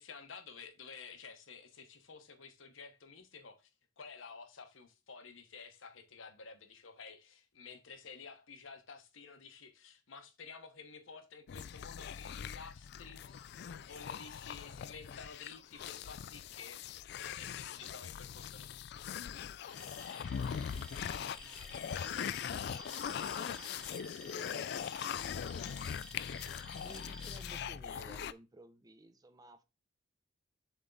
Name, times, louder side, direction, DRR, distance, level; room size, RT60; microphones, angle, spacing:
voice 1, 0.0-3.7 4.0-16.9 17.2-18.7, left 5 dB, 80° left, 1.1 m, -52 dB
sound 1, 11.5-28.3, left 8 dB, 55° left, 0.3 m, -41 dB
Alarm, 19.7-27.7, equal, 5° left, 1.0 m, -52 dB
voice 2, 21.4-23.8 24.2-25.1 26.8-29.6, right 1 dB, 20° right, 0.6 m, -58 dB
7.2 x 3.5 x 3.9 m
head